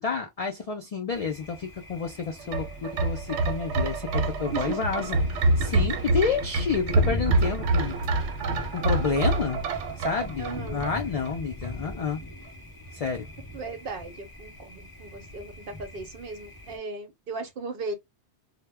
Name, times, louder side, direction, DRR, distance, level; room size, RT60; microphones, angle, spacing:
voice 1, 0.0-8.2 8.7-9.6 10.0-12.2 12.9-13.3, left 5 dB, 70° left, 0.3 m, -30 dB
Thunder, 1.1-16.8, left 1 dB, 25° left, 0.6 m, -40 dB
sound 1, 2.4-11.3 11.6-11.7, right 2 dB, 90° right, 0.9 m, -26 dB
voice 2, 10.4-10.9 13.5-17.9, right 4 dB, 55° right, 0.8 m, -36 dB
2.1 x 2.1 x 3.3 m
omnidirectional pair, 1.2 m